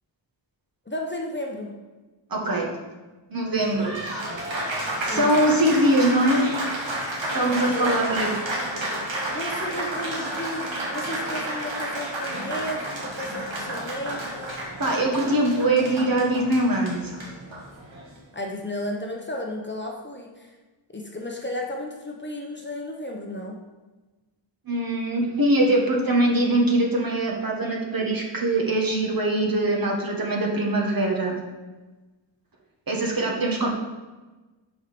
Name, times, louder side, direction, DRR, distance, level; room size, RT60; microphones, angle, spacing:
voice 1, 0.9-1.7 5.1-5.3 7.3-7.9 9.2-14.6 18.3-20.6 20.9-23.6, left 1 dB, 25° left, 1 dB, 0.9 m, -33 dB
voice 2, 2.3-2.7 3.3-6.7 7.3-8.4 14.8-17.1 24.6-31.3 32.9-33.7, right 1 dB, 45° right, 0 dB, 1.4 m, -23 dB
Applause, 3.4-18.2, right 1 dB, 75° right, 1.8 m, -31 dB
6.3 x 4.8 x 5.1 m, 1.2 s
wide cardioid pair, 90°, 46 cm